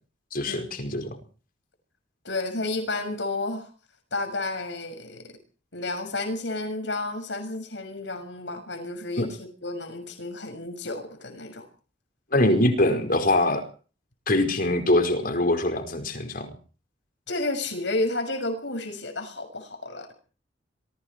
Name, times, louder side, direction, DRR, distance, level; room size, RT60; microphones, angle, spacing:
voice 1, 0.3-1.2 9.2-9.3 12.3-13.6 14.3-16.5, left 1 dB, 50° left, 7 dB, 5.0 m, -23 dB
voice 2, 2.2-3.7 4.1-5.3 5.7-9.3 9.6-11.7 17.3-20.1, left 2 dB, 70° left, 7 dB, 6.4 m, -31 dB
25.0 x 23.0 x 4.7 m, 0.42 s
head